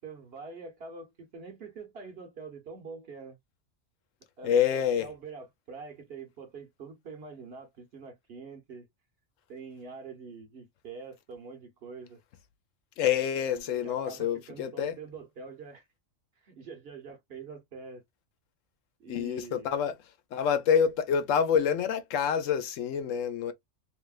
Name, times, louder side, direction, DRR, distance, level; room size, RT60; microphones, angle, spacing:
voice 1, 0.0-3.4 4.4-8.9 9.5-12.2 13.5-15.9 16.4-18.0 19.0-19.7, right 4 dB, 55° right, 1.1 m, -45 dB
voice 2, 4.4-5.1 13.0-15.0 19.1-19.9 20.3-23.5, left 8 dB, 85° left, 1.0 m, -27 dB
3.2 x 2.8 x 2.3 m
omnidirectional pair, 1.3 m